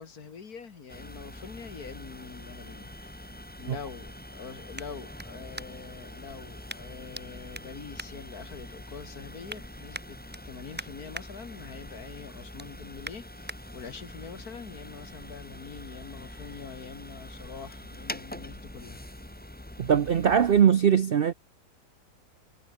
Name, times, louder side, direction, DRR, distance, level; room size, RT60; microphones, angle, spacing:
voice 1, 0.0-3.1 3.6-19.0, left 6 dB, 60° left, 2.3 m, -44 dB
sound 1, 0.9-20.6, left 1 dB, 5° left, 1.7 m, -44 dB
sound 2, 4.7-6.0 6.7-7.2 7.5-8.8 9.2-9.6 9.9-11.3 11.7-11.9 12.3-13.6 14.1-14.2, right 1 dB, 10° right, 0.5 m, -44 dB
voice 2, 19.8-21.3, right 8 dB, 75° right, 0.5 m, -21 dB
omnidirectional pair, 1.8 m